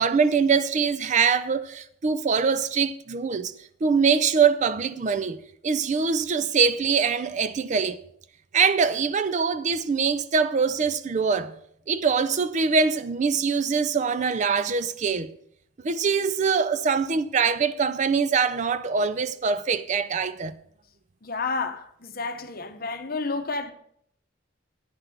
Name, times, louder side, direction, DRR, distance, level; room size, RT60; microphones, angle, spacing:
voice 1, 0.0-3.5 3.8-5.4 5.6-8.0 8.5-11.5 11.9-15.3 15.8-20.5, right 5 dB, 35° right, 0.4 m, -23 dB
voice 2, 21.2-23.7, left 4 dB, 45° left, 0.8 m, -30 dB
9.5 x 5.9 x 6.6 m
head